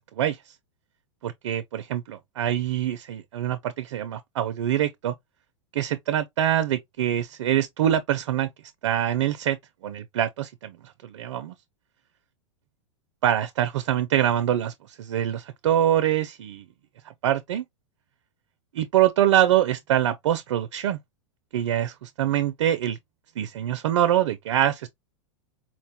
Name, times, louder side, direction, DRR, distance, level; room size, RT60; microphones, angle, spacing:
voice 1, 1.2-5.1 5.7-8.5 8.8-9.6 9.8-11.5 13.2-16.6 17.2-17.6 18.7-21.0 21.5-23.0 23.4-24.9, right 11 dB, 75° right, 0.4 m, -24 dB
4.2 x 2.1 x 2.7 m
hypercardioid pair, 115°, 15 cm